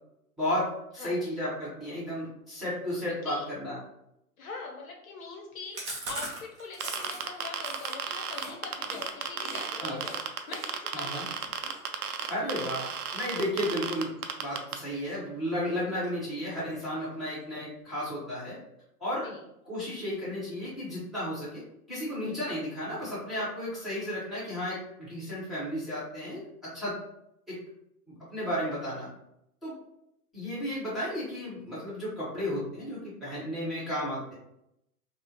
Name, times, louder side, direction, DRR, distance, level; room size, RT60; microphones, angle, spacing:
voice 1, 0.4-3.8 9.8-10.0 10.9-11.2 12.3-18.6 19.0-19.3 19.6-21.6 21.9-27.0 27.5-27.6 28.1-29.1 29.6-29.7 30.3-34.3, equal, ahead, -10 dB, 1.2 m, -33 dB
voice 2, 3.1-3.4 4.4-11.6 19.2-19.4, left 4 dB, 60° left, 1 dB, 0.7 m, -43 dB
Chewing mastication, 5.7-9.7 10.0-10.2 10.5-13.5 13.9-14.2 14.5-15.4 15.6-15.7 16.0-16.1 16.4-17.0, right 2 dB, 20° right, 0.5 m, -42 dB
sound 1, 6.8-14.7, right 8 dB, 75° right, 0.6 m, -33 dB
3.4 x 2.0 x 3.0 m, 0.80 s
hypercardioid pair, 125°, 46 cm